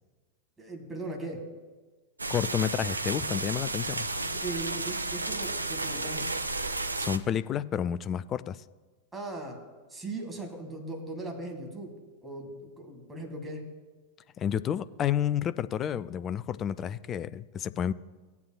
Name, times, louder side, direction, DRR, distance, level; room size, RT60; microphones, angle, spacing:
voice 1, 0.6-1.5 4.2-6.3 9.1-9.6 9.9-11.9 12.2-13.7, right 2 dB, 10° right, 2 dB, 1.7 m, -38 dB
sound 1, 2.2-7.2, right 2 dB, 80° right, 0.4 m, -32 dB
voice 2, 2.3-4.1 7.0-8.6 14.4-17.9, left 9 dB, 30° left, 16 dB, 0.3 m, -30 dB
17.0 x 8.3 x 2.2 m, 1.3 s
figure-of-eight pair, 90°, 0 cm